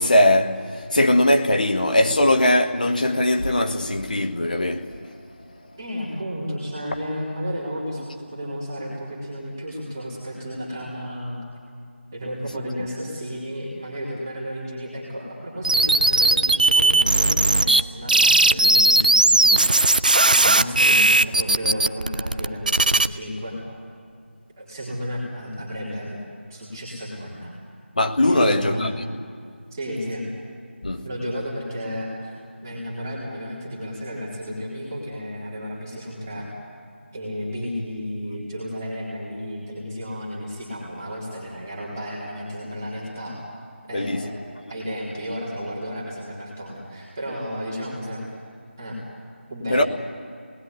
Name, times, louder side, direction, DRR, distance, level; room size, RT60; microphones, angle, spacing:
voice 1, 0.0-4.9 28.0-28.9 30.8-31.1 43.9-44.2 49.7-49.8, left 1 dB, 40° left, 1.6 m, -20 dB
voice 2, 5.8-11.4 12.1-19.7 20.3-23.6 24.6-26.2 26.5-27.5 28.3-28.9 29.7-30.3 31.0-32.4 32.6-36.5 37.1-43.4 43.9-48.2 48.8-49.0 49.5-49.8, equal, 15° right, 3.9 m, -32 dB
sound 1, 15.6-17.8 18.1-23.1, right 2 dB, 40° right, 0.6 m, -17 dB
28.0 x 20.0 x 9.7 m
figure-of-eight pair, 170°, 7 cm